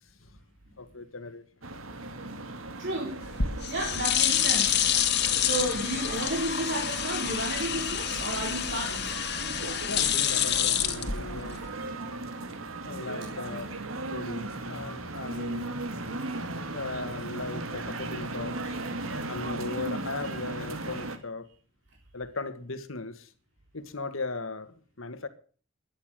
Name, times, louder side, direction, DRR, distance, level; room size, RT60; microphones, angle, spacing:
voice 1, 0.8-1.4 9.9-11.6 12.9-13.8 14.1-15.7 16.7-18.8 19.1-21.5 22.1-23.3 23.7-25.3, left 3 dB, 75° left, 2.0 m, -38 dB
sound 1, 1.6-21.2, right 2 dB, 85° right, 2.3 m, -37 dB
voice 2, 2.8-3.2 3.7-4.7 5.4-9.1 13.4-13.5 14.5-14.6, right 1 dB, 60° right, 3.8 m, -32 dB
sound 2, 3.2-11.7, left 9 dB, 55° left, 2.1 m, -28 dB
15.0 x 11.5 x 6.8 m
head